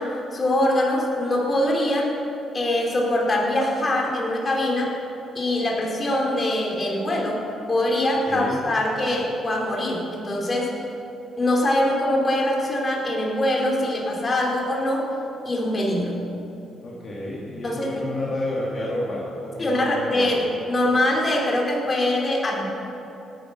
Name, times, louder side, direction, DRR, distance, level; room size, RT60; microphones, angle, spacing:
voice 1, 0.0-2.1 2.5-5.0 5.3-7.4 7.7-10.7 11.4-15.1 15.4-16.2 17.6-18.0 19.6-22.7, left 1 dB, 30° left, -2 dB, 4.1 m, -23 dB
voice 2, 8.3-8.6 16.8-20.3, left 1 dB, 45° left, -5 dB, 2.9 m, -30 dB
17.0 x 10.0 x 6.5 m, 2.9 s
cardioid pair, 90°, 0 cm